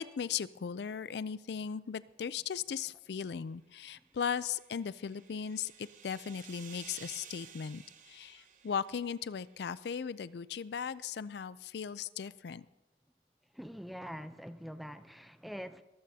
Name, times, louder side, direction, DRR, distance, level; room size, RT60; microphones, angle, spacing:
voice 1, 0.0-12.7, left 7 dB, 70° left, 17 dB, 0.4 m, -37 dB
sound 1, 4.1-9.7, right 8 dB, 45° right, 1.0 m, -54 dB
voice 2, 13.5-15.8, equal, ahead, 10 dB, 0.5 m, -44 dB
21.5 x 14.0 x 2.8 m, 1.0 s
head